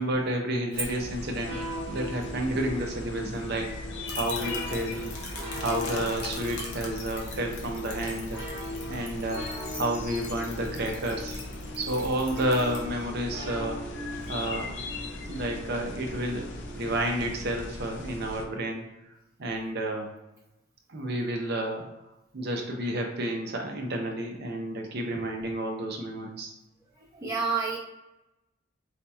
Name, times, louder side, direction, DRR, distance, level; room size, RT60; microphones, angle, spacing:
voice 1, 0.0-5.2 5.6-8.6 8.9-11.4 11.8-13.9 14.3-14.7 15.2-16.5 16.8-18.9 19.4-20.1 20.9-21.9 22.3-26.5, right 1 dB, 50° right, 2 dB, 0.5 m, -31 dB
sound 1, 0.7-18.5, left 2 dB, 55° left, 0.4 m, -39 dB
sound 2, 1.4-17.6, equal, 10° left, 1.2 m, -41 dB
sound 3, 4.1-12.8, left 3 dB, 75° left, 0.8 m, -42 dB
voice 2, 27.1-27.8, right 5 dB, 15° right, -7 dB, 0.8 m, -31 dB
4.2 x 2.8 x 2.2 m, 0.95 s
head